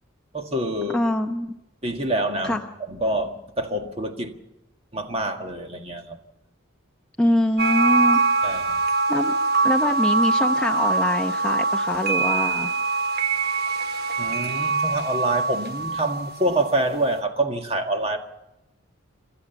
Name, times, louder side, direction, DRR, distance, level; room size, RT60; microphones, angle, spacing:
voice 1, 0.3-1.0 1.8-2.6 2.9-4.3 4.9-6.2 8.4-8.8 14.2-18.2, right 1 dB, 30° right, 4 dB, 1.8 m, -26 dB
voice 2, 0.9-1.5 2.4-2.6 7.2-8.2 9.1-9.3 9.6-12.7, left 1 dB, 5° left, 1 dB, 0.7 m, -24 dB
sound 1, 7.6-16.9, right 4 dB, 50° right, 1.0 m, -23 dB
29.0 x 13.0 x 7.1 m, 0.91 s
head